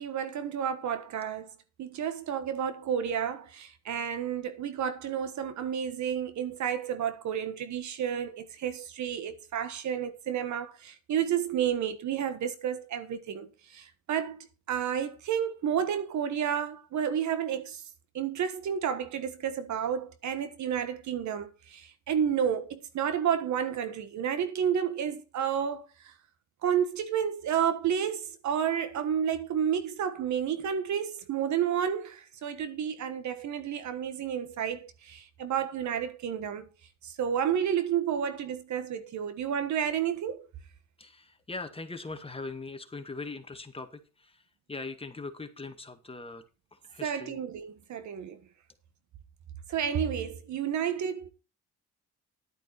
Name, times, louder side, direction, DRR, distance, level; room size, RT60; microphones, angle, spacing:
voice 1, 0.0-1.5 1.8-13.5 13.7-14.4 14.7-17.8 18.1-25.8 26.6-36.6 37.0-40.4 47.0-48.4 49.7-51.3, right 8 dB, 70° right, 1.4 m, -31 dB
voice 2, 41.0-44.3 44.7-46.4 46.7-47.4, left 3 dB, 20° left, 1.9 m, -41 dB
11.5 x 9.0 x 4.2 m
cardioid pair, 90°, 30 cm